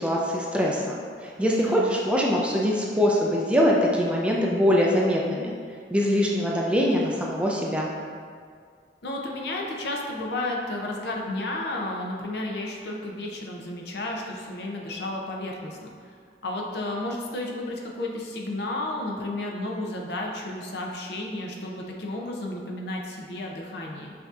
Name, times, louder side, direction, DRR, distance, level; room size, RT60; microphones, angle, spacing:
voice 1, 0.0-5.5 5.9-7.9, equal, 5° right, -3 dB, 0.3 m, -23 dB
voice 2, 1.6-2.0 9.0-16.1 16.4-24.1, left 1 dB, 65° left, 0 dB, 0.5 m, -32 dB
5.7 x 2.7 x 2.4 m, 2.1 s
head